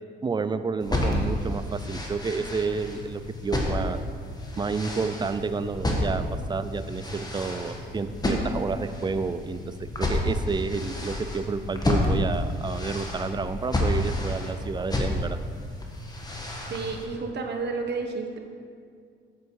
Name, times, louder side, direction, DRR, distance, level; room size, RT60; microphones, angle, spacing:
voice 1, 0.2-4.0 4.6-6.2 6.5-9.6 10.0-15.4, right 4 dB, 20° right, 11 dB, 0.5 m, -30 dB
sound 1, 0.8-17.0, left 1 dB, 20° left, 1.5 m, -30 dB
voice 2, 16.7-18.4, right 4 dB, 60° right, 3 dB, 1.3 m, -31 dB
8.0 x 7.8 x 4.8 m, 2.2 s
cardioid pair, 90°, 20 cm